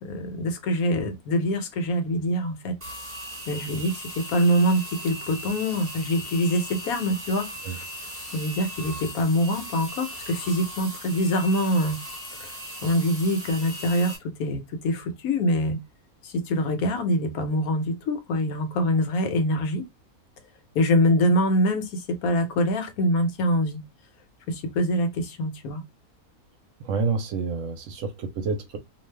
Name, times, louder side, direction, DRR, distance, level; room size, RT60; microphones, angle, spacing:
voice 1, 0.0-2.7 3.5-7.9 8.3-12.0 12.3-12.5 12.8-15.8 16.2-19.8 20.7-23.8 24.5-25.8, equal, 75° left, 1.2 m, -24 dB
sound 1, 2.8-14.2, equal, 10° right, 1.2 m, -38 dB
voice 2, 26.8-28.8, right 4 dB, 70° right, 0.9 m, -28 dB
2.6 x 2.3 x 3.2 m
omnidirectional pair, 1.5 m